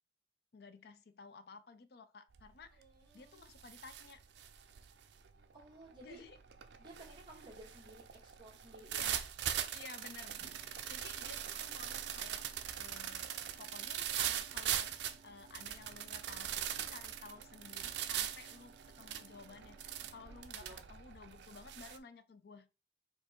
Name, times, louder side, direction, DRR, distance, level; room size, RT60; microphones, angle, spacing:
voice 1, 0.5-2.8 3.1-4.2 6.0-6.4 8.9-9.3 9.7-12.5 12.8-22.7, left 4 dB, 60° left, 0.5 m, -54 dB
sound 1, 2.3-2.7 3.0-22.0, right 10 dB, 75° right, 0.5 m, -41 dB
voice 2, 2.8-3.4 5.5-6.2 6.8-9.0 20.6-20.8, right 1 dB, 25° right, 1.9 m, -55 dB
sound 2, 10.2-20.5, right 4 dB, 40° right, 1.0 m, -62 dB
4.4 x 2.6 x 4.3 m
head